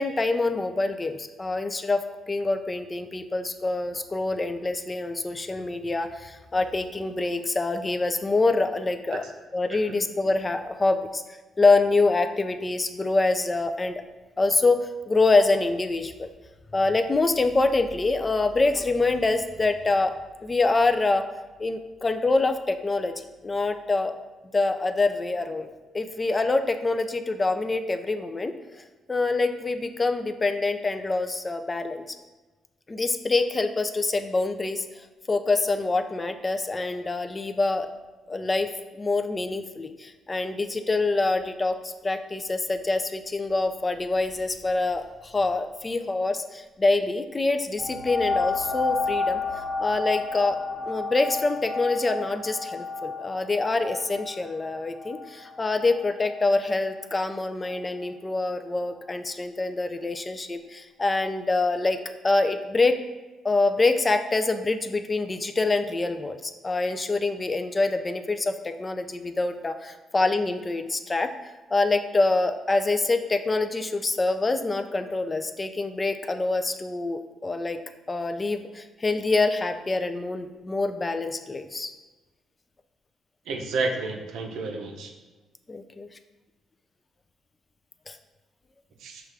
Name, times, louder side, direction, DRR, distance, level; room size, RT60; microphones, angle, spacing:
voice 1, 0.0-2.0 2.3-9.2 9.5-11.2 11.6-14.0 14.4-16.3 16.7-20.2 20.4-21.2 21.6-24.1 24.5-25.7 25.9-28.5 29.1-32.0 32.9-34.8 35.3-37.9 38.3-38.7 38.9-49.4 49.8-50.6 50.9-62.0 62.2-63.0 63.4-71.3 71.7-77.8 78.1-81.9 85.7-86.1 88.1-88.2, left 3 dB, 25° left, 8 dB, 0.3 m, -25 dB
Bell Ambience, 47.8-57.0 57.7-57.8, left 3 dB, 5° right, 1.2 m, -31 dB
voice 2, 83.5-85.1 89.0-89.2, right 3 dB, 85° right, 3 dB, 0.6 m, -31 dB
5.8 x 2.4 x 3.3 m, 1.2 s
cardioid pair, 90°, 0 cm